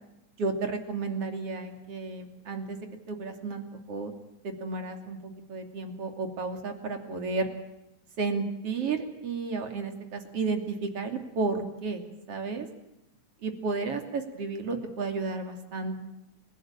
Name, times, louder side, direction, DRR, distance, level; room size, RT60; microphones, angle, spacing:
voice 1, 0.4-2.8 3.1-4.1 4.4-7.5 8.2-12.7 13.4-16.0, right 4 dB, 55° right, 6 dB, 3.7 m, -32 dB
30.0 x 17.0 x 8.9 m, 0.89 s
omnidirectional pair, 3.3 m